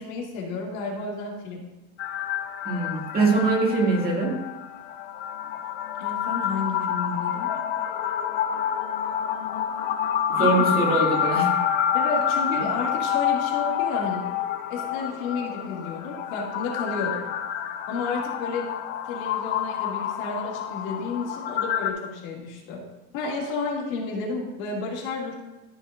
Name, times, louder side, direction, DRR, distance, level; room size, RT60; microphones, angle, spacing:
voice 1, 0.0-1.6 6.0-7.5 10.4-10.7 11.9-14.3 14.7-17.2 17.9-18.7 19.1-22.8 23.1-25.3, left 3 dB, 70° left, -2 dB, 2.5 m, -31 dB
sound 1, 2.0-21.9, left 9 dB, 30° left, 0.3 m, -28 dB
voice 2, 2.6-4.4 10.3-11.5, right 3 dB, 20° right, -3 dB, 2.3 m, -23 dB
13.5 x 6.4 x 2.6 m, 1.1 s
supercardioid pair, 140°, 42 cm